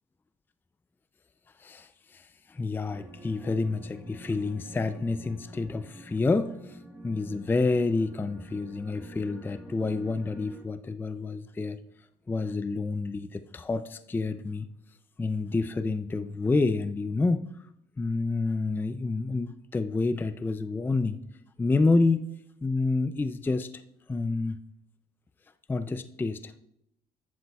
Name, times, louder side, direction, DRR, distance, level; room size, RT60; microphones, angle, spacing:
voice 1, 1.6-6.8 7.0-11.8 12.3-14.7 15.2-17.5 18.0-21.2 21.6-22.2 22.6-23.7 24.1-24.6 25.7-26.6, left 3 dB, 10° left, 12 dB, 0.3 m, -28 dB
sound 1, 2.9-10.7, equal, 10° right, 1.1 m, -47 dB
10.5 x 8.2 x 2.3 m, 0.77 s
cardioid pair, 110°, 17 cm